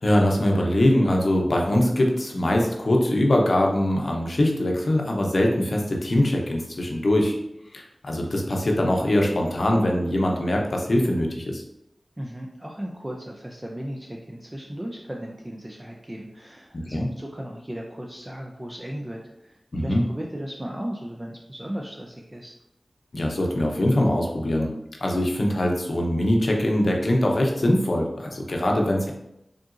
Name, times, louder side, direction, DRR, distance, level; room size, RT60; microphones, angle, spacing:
voice 1, 0.0-7.3 7.7-11.6 16.7-17.1 19.7-20.0 23.1-24.7 25.0-29.1, left 1 dB, 60° left, 0 dB, 0.6 m, -22 dB
voice 2, 12.2-22.6, equal, 20° right, 0 dB, 0.5 m, -36 dB
3.8 x 3.7 x 2.5 m, 0.84 s
wide cardioid pair, 55°, 0 cm